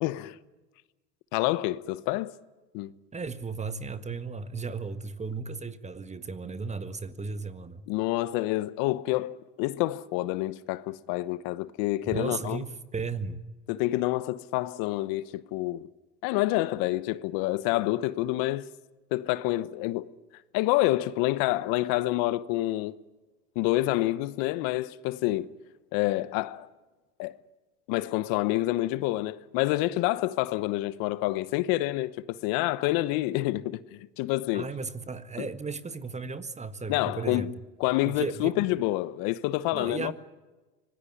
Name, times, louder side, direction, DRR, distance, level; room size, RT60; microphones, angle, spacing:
voice 1, 0.0-0.4 1.3-2.3 2.7-2.9 7.9-12.6 13.7-15.9 16.2-18.7 19.1-20.1 20.5-22.9 23.5-25.5 25.9-26.7 27.2-27.4 27.9-34.7 35.4-35.5 36.9-37.5 37.8-40.1, left 17 dB, 75° left, 1.1 m, -28 dB
voice 2, 3.1-7.8 12.1-13.4 34.5-37.5 38.1-38.6 39.7-40.1, right 4 dB, 20° right, 1.7 m, -35 dB
25.0 x 19.5 x 9.7 m
supercardioid pair, 100°, 35 cm